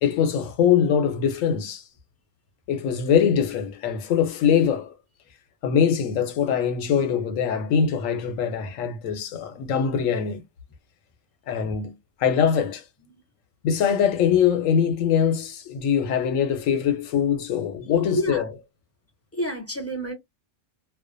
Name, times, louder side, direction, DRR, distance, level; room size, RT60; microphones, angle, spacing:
voice 1, 0.0-1.8 2.7-4.9 5.6-10.4 11.5-11.9 12.2-12.8 13.6-18.5, left 8 dB, 85° left, 1.0 m, -22 dB
voice 2, 19.3-20.1, equal, 15° left, 0.5 m, -28 dB
2.4 x 2.2 x 2.5 m
omnidirectional pair, 1.3 m